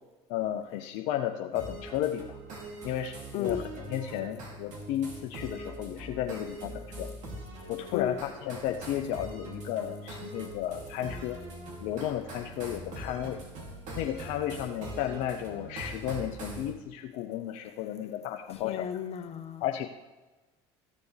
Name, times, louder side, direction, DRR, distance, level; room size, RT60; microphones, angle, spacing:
voice 1, 0.3-2.4 2.8-3.6 3.9-7.1 7.7-11.4 11.8-13.4 14.0-18.9 19.6-19.9, left 11 dB, 70° left, 0.6 m, -33 dB
sound 1, 1.5-16.7, right 1 dB, 60° right, 2.8 m, -42 dB
voice 2, 18.5-19.6, left 10 dB, 50° left, 1.0 m, -33 dB
14.0 x 6.9 x 3.3 m
hypercardioid pair, 70°, 14 cm